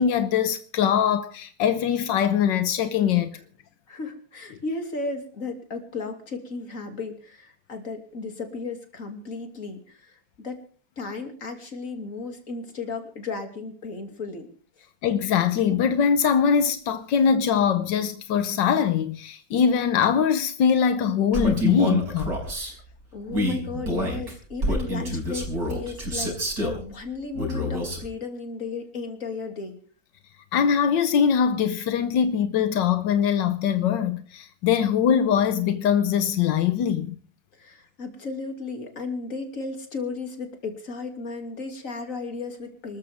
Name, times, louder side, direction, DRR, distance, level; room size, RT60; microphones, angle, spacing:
voice 1, 0.0-3.3 15.0-22.3 30.5-37.2, left 7 dB, 90° left, 1.6 m, -22 dB
voice 2, 3.9-10.6 11.0-14.5 22.5-22.8 23.1-29.8 37.5-43.0, left 4 dB, 45° left, 3.1 m, -35 dB
Male speech man speaking, 21.3-22.7 23.3-26.8 27.3-28.1, equal, 55° right, 5.6 m, -27 dB
25.5 x 13.5 x 3.6 m
omnidirectional pair, 1.9 m